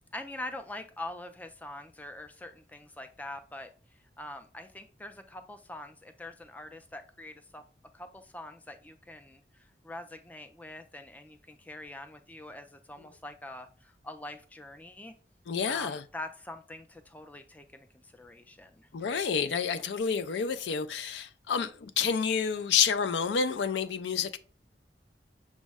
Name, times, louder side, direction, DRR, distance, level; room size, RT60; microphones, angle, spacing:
voice 1, 0.1-3.7 4.2-7.6 7.9-15.1 15.7-18.9, left 1 dB, 10° left, 0.3 m, -44 dB
voice 2, 15.5-16.0 18.9-24.4, left 6 dB, 85° left, 0.4 m, -29 dB
6.1 x 2.1 x 3.4 m
head